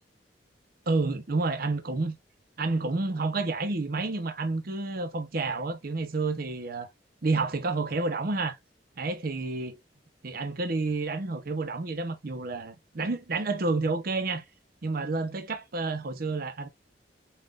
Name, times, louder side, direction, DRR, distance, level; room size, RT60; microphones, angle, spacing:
voice 1, 0.9-2.1 2.6-6.9 7.2-8.6 9.0-9.8 10.2-14.4 14.8-16.7, right 3 dB, 55° right, 0.7 m, -29 dB
5.4 x 2.4 x 2.3 m
head